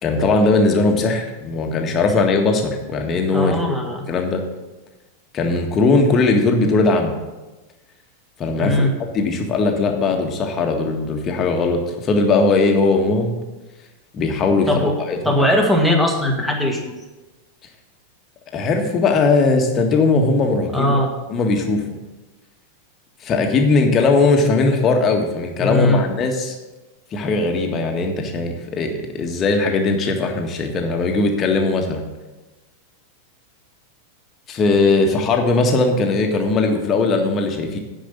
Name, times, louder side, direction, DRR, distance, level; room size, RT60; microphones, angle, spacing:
voice 1, 0.0-3.5 4.1-4.4 5.3-7.1 8.4-8.9 9.1-13.3 14.1-15.4 18.5-21.0 21.3-21.8 23.2-26.5 27.1-32.0 34.5-37.8, left 3 dB, 30° left, 3 dB, 1.7 m, -19 dB
voice 2, 3.3-4.1 8.6-8.9 14.7-14.9 15.2-16.9 20.7-21.1 25.6-26.0, left 1 dB, ahead, 1 dB, 1.9 m, -19 dB
10.0 x 5.5 x 8.2 m, 1.1 s
figure-of-eight pair, 90°, 0 cm